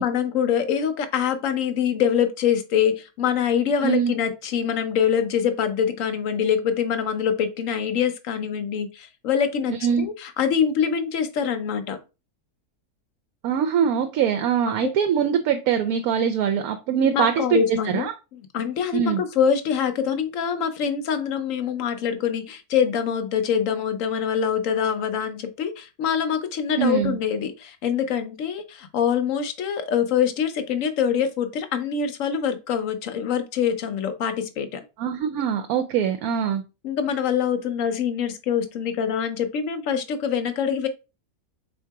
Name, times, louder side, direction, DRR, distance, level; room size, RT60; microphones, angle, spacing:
voice 1, 0.0-12.0 14.8-14.9 17.0-18.1 18.3-34.8 36.8-40.9, left 8 dB, 65° left, 9 dB, 1.0 m, -24 dB
voice 2, 3.8-4.1 9.7-10.1 13.4-18.1 18.9-19.2 26.8-27.2 35.0-36.6, right 8 dB, 75° right, 7 dB, 1.0 m, -23 dB
3.7 x 2.8 x 4.6 m, 0.29 s
omnidirectional pair, 1.6 m